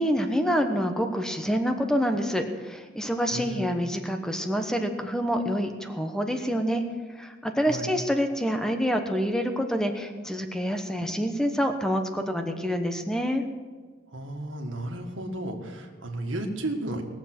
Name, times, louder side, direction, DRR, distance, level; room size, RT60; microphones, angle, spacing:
voice 1, 0.0-6.8 7.2-13.4, equal, 5° left, 5 dB, 1.0 m, -27 dB
voice 2, 14.1-17.0, right 1 dB, 85° right, 3 dB, 1.7 m, -33 dB
20.0 x 7.2 x 6.1 m, 1.4 s
head